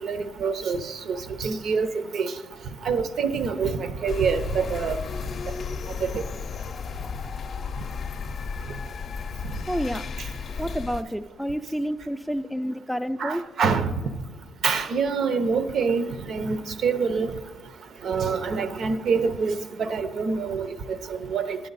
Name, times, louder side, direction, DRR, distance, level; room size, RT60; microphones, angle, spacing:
voice 1, 0.0-1.9 2.1-2.3 2.8-5.0 6.0-6.2 13.2-13.9 14.6-17.4 18.0-21.6, right 5 dB, 65° right, 0.7 m, -26 dB
sound 1, 4.1-11.0, left 6 dB, 55° left, 0.6 m, -33 dB
voice 2, 9.7-10.0 10.6-13.4, equal, 5° right, 0.3 m, -29 dB
10.0 x 8.4 x 4.0 m
cardioid pair, 90°, 0 cm